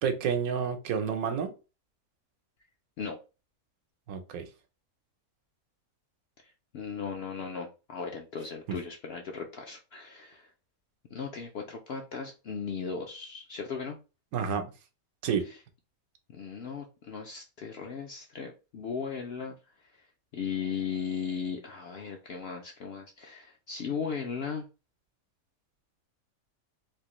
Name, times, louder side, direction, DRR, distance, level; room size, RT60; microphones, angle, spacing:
voice 1, 0.0-1.5 4.1-4.4 8.7-8.8 14.3-14.7 15.2-15.5, right 7 dB, 80° right, 7 dB, 1.1 m, -29 dB
voice 2, 6.7-10.5 11.1-14.0 16.3-19.5 20.3-24.7, left 6 dB, 70° left, 2 dB, 0.6 m, -37 dB
3.5 x 2.5 x 3.0 m, 0.30 s
omnidirectional pair, 1.5 m